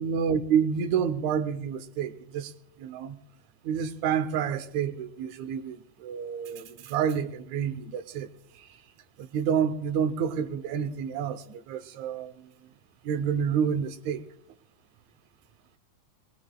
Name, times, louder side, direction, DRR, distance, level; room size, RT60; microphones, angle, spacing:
voice 1, 0.0-2.5 2.8-3.2 3.6-8.3 9.2-12.5 13.1-14.2, right 7 dB, 70° right, 2.0 m, -29 dB
21.5 x 20.0 x 2.3 m
omnidirectional pair, 3.6 m